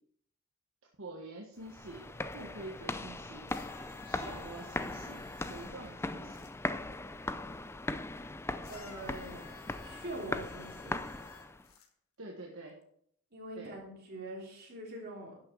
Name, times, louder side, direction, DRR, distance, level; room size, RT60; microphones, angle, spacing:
voice 1, 1.0-2.0 2.3-3.4 4.0-6.5 12.2-12.7 13.5-13.7, right 2 dB, 70° right, 0 dB, 1.4 m, -46 dB
sound 1, 1.6-11.7, left 2 dB, 10° left, 0.4 m, -39 dB
sound 2, 3.5-6.5 8.6-11.9 12.8-12.9, left 5 dB, 70° left, 1.5 m, -54 dB
voice 2, 8.7-9.4 9.8-11.0 13.3-15.4, right 1 dB, 50° right, -2 dB, 3.5 m, -43 dB
11.5 x 6.6 x 4.6 m, 0.68 s
head